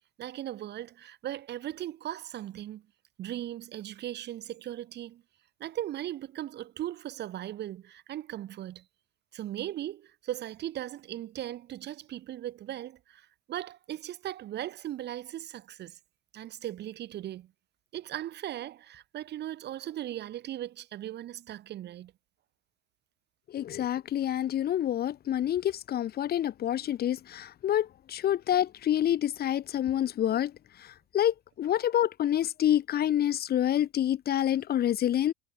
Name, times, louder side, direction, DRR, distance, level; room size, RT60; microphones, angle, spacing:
voice 1, 0.2-2.8 3.2-5.2 5.6-8.8 9.3-16.0 16.3-17.5 17.9-22.1, right 12 dB, 25° right, 2.5 m, -38 dB
voice 2, 23.5-30.5 31.1-35.3, left 11 dB, 25° left, 2.9 m, -27 dB
supercardioid pair, 165°, 39 cm